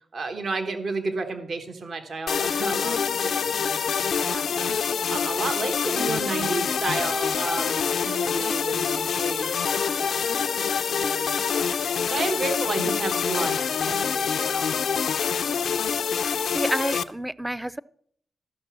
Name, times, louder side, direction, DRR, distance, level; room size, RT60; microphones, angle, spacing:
voice 1, 0.1-14.9 15.3-15.4, right 3 dB, 65° right, 6 dB, 1.2 m, -33 dB
sound 1, 2.3-17.0, left 7 dB, 80° left, 0.4 m, -26 dB
voice 2, 16.2-17.8, right 1 dB, 10° right, 19 dB, 0.4 m, -29 dB
13.0 x 5.9 x 6.0 m, 0.64 s
supercardioid pair, 45°, 0 cm